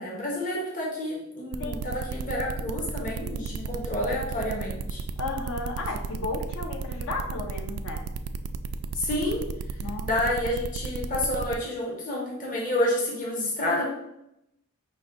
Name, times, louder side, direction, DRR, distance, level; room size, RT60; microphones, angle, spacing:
voice 1, 0.0-5.0 9.0-9.4 10.0-13.8, left 1 dB, 35° left, -3 dB, 1.0 m, -29 dB
sound 1, 1.5-11.6, right 5 dB, 70° right, 0.3 m, -33 dB
voice 2, 5.2-8.0 9.8-10.2, left 2 dB, 60° left, 2 dB, 0.8 m, -33 dB
5.0 x 2.3 x 3.9 m, 0.81 s
head